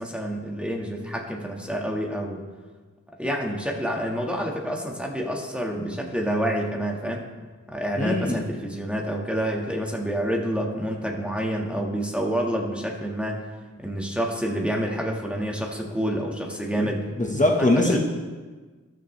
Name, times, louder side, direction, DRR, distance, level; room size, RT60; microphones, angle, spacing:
voice 1, 0.0-2.4 3.2-7.2 7.7-13.4 13.8-17.0 17.6-18.0, equal, 5° right, -1 dB, 1.7 m, -28 dB
voice 2, 8.0-8.4 16.8-16.9 17.2-18.0, left 1 dB, 25° left, -1 dB, 1.4 m, -22 dB
14.0 x 11.5 x 3.3 m, 1.4 s
wide cardioid pair, 65°, 31 cm